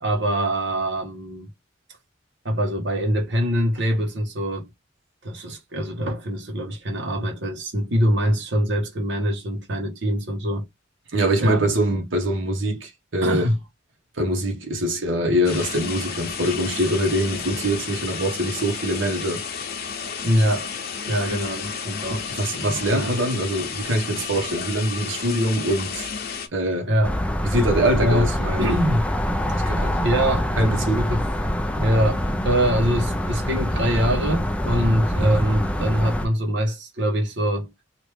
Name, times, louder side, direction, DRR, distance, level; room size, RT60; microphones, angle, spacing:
voice 1, 0.0-1.5 2.4-4.7 5.2-10.6 11.4-11.6 13.2-13.6 20.2-20.7 21.1-22.2 22.9-23.1 26.9-27.2 28.0-28.3 28.6-29.1 29.5-29.6 30.0-30.5 30.9-31.3 31.8-37.7, equal, 65° right, 1.0 m, -23 dB
voice 2, 11.1-13.4 14.2-19.4 22.3-26.1 26.5-26.9 27.4-28.8 29.7-30.0 30.6-31.0 35.1-35.3, right 1 dB, 90° right, 1.1 m, -23 dB
sound 1, 15.4-26.5, left 6 dB, 55° left, 0.8 m, -32 dB
sound 2, 27.0-36.3, equal, 5° left, 0.4 m, -25 dB
3.1 x 2.5 x 3.3 m
head